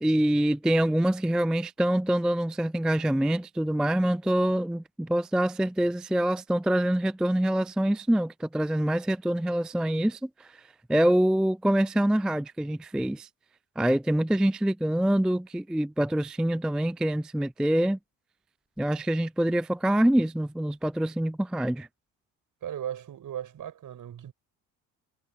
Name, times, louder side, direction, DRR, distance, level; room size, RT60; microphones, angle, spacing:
voice 1, 0.0-10.6 10.9-13.3 13.8-18.0 18.8-21.9, right 1 dB, ahead, 0.3 m, -25 dB
voice 2, 22.6-24.3, right 10 dB, 55° right, 6.1 m, -37 dB
supercardioid pair, 70°, 39 cm